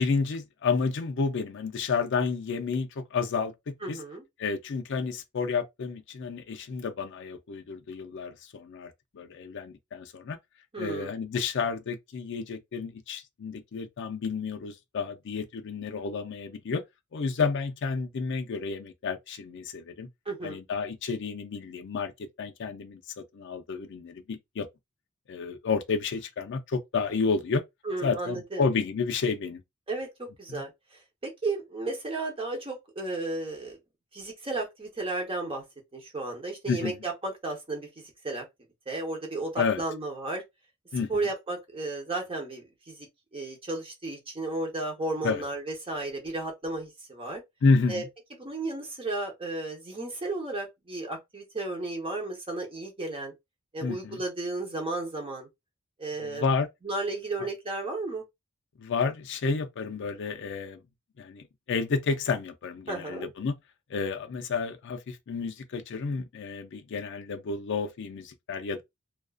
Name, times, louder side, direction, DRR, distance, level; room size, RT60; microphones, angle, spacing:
voice 1, 0.0-4.0 4.4-10.4 10.8-16.8 17.1-20.1 20.4-24.7 25.3-27.6 28.0-29.6 30.5-30.6 36.7-37.0 39.6-39.8 40.9-41.1 45.2-45.4 47.6-48.0 53.8-54.2 56.2-56.7 58.8-60.8 61.2-63.5 63.9-68.8, left 4 dB, 60° left, 0.4 m, -30 dB
voice 2, 3.8-4.2 10.7-11.1 20.3-20.6 27.8-28.6 29.9-33.8 34.1-35.6 35.9-38.4 38.9-40.4 41.1-43.1 43.3-47.4 47.9-48.0 48.4-53.3 53.7-55.5 56.0-56.4 56.8-58.2 62.9-63.3, right 2 dB, 25° right, 0.8 m, -34 dB
2.4 x 2.3 x 2.3 m
head